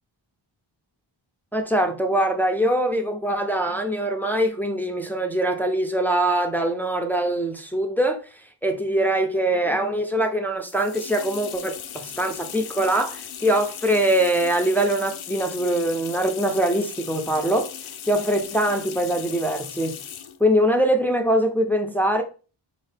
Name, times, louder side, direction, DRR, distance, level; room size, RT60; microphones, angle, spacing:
voice 1, 1.5-17.7 18.1-20.0 20.4-22.2, right 1 dB, 5° left, 0.5 m, -23 dB
sound 1, 10.6-20.4, left 9 dB, 85° left, 0.6 m, -38 dB
4.3 x 2.8 x 3.3 m
wide cardioid pair, 90°, 48 cm